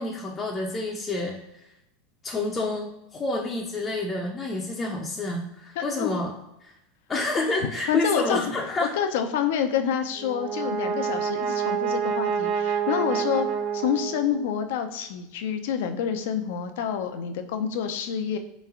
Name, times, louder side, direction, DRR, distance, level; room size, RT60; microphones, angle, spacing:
voice 1, 0.0-1.6 2.2-6.3 6.6-6.7 7.1-9.0, left 2 dB, 20° left, 0 dB, 0.5 m, -29 dB
voice 2, 5.8-6.2 7.3-8.4 8.8-13.5 13.7-18.4, left 8 dB, 70° left, 7 dB, 0.4 m, -28 dB
Brass instrument, 10.1-14.5, right 7 dB, 40° right, 0.7 m, -28 dB
3.3 x 3.1 x 3.6 m, 0.89 s
supercardioid pair, 150°, 0 cm